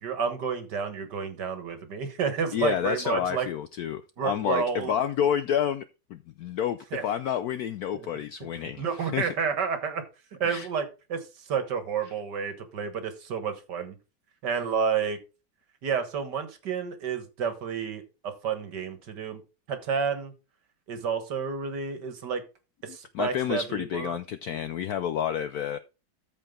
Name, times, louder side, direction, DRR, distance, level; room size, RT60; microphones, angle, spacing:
voice 1, 0.0-3.5 4.2-4.9 6.9-7.0 7.9-8.1 8.8-10.0 10.4-14.0 14.4-15.2 15.8-19.4 19.7-20.3 20.9-22.4 22.8-24.2, right 6 dB, 60° right, 9 dB, 1.9 m, -30 dB
voice 2, 2.5-5.8 6.1-9.3 10.4-10.7 23.1-25.8, left 9 dB, 75° left, 12 dB, 0.8 m, -29 dB
13.5 x 4.9 x 3.7 m, 0.30 s
omnidirectional pair, 2.1 m